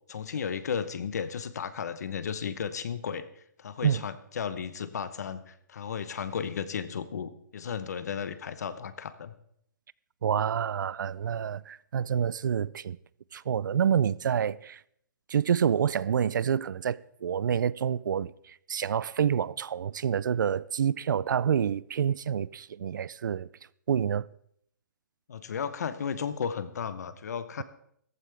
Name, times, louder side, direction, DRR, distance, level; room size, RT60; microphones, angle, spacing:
voice 1, 0.1-9.3 25.3-27.6, left 7 dB, 55° left, 0.9 m, -34 dB
voice 2, 10.2-13.0 13.3-14.8 15.3-23.5 23.9-24.3, right 8 dB, 80° right, 0.4 m, -28 dB
14.5 x 13.0 x 3.4 m
hypercardioid pair, 175°, 10 cm